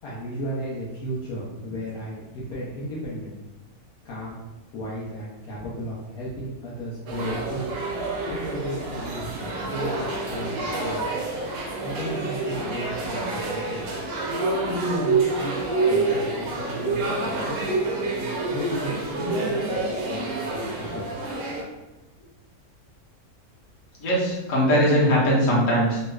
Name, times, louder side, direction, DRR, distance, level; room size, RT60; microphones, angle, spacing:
voice 1, 0.0-3.4 4.0-4.4 4.7-7.8 8.3-11.1 11.8-13.9 14.7-15.6 15.8-17.6 18.0-19.8 20.1-21.4 22.2-22.3, equal, 75° left, -7 dB, 1.1 m, -34 dB
sound 1, 7.1-21.6, right 3 dB, 70° right, 1.1 m, -28 dB
voice 2, 24.0-26.0, equal, 60° left, -6 dB, 1.3 m, -20 dB
3.2 x 3.0 x 2.3 m, 1.1 s
omnidirectional pair, 1.6 m